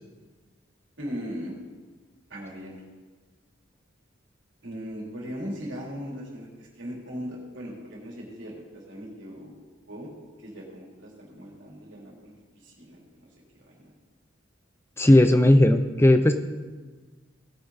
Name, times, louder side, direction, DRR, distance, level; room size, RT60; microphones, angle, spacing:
voice 1, 1.0-1.5 2.3-2.8 4.6-9.5 9.9-10.1 10.4-13.3 13.6-13.9, equal, 70° right, -3 dB, 3.3 m, -39 dB
voice 2, 15.0-16.3, left 1 dB, 10° left, 8 dB, 0.4 m, -17 dB
18.0 x 6.9 x 4.1 m, 1.4 s
head